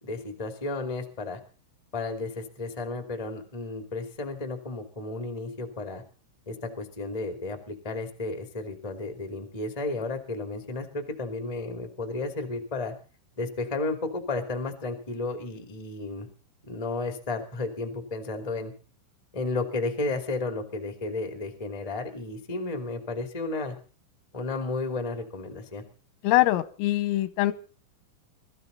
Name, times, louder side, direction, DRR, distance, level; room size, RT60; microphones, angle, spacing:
voice 1, 0.0-1.4 1.9-6.0 6.4-12.9 13.4-16.3 16.6-18.7 19.3-23.7 24.3-25.8, left 3 dB, 55° left, 5 dB, 0.4 m, -33 dB
voice 2, 26.2-27.5, left 16 dB, 90° left, 14 dB, 3.6 m, -23 dB
23.0 x 14.0 x 4.0 m, 0.37 s
omnidirectional pair, 5.9 m